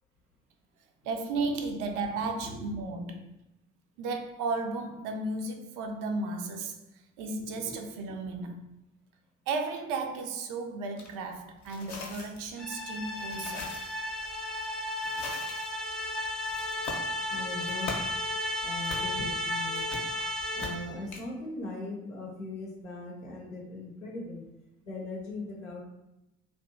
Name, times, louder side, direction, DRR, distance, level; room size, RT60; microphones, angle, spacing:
voice 1, 1.1-3.3 4.0-6.8 7.2-8.6 9.5-13.7, right 3 dB, 60° right, 0.5 m, -34 dB
voice 2, 2.2-2.6 7.4-7.7 8.0-8.1 17.3-18.0 18.6-19.9 20.5-24.4 24.8-25.8, left 2 dB, 90° left, 0.7 m, -40 dB
sound 1, 11.0-11.1 11.6-21.2, left 3 dB, 55° left, 0.7 m, -43 dB
sound 2, 12.6-21.0, left 1 dB, ahead, 0.3 m, -34 dB
2.6 x 2.2 x 2.5 m
figure-of-eight pair, 45°, 37 cm